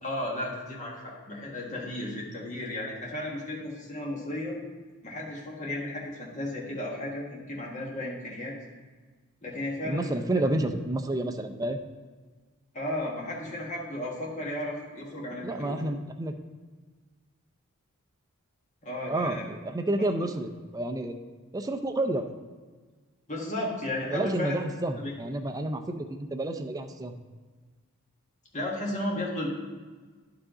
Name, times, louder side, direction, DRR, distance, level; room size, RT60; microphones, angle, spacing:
voice 1, 0.0-4.6 5.0-8.5 9.4-10.1 12.7-15.8 18.8-19.5 23.3-24.5 25.0-25.2 28.5-29.5, left 1 dB, 35° left, -3 dB, 1.5 m, -34 dB
voice 2, 9.9-11.8 15.4-16.3 19.1-21.1 21.5-22.3 24.1-27.1, right 1 dB, 15° right, 6 dB, 0.4 m, -30 dB
11.0 x 4.9 x 3.8 m, 1.4 s
head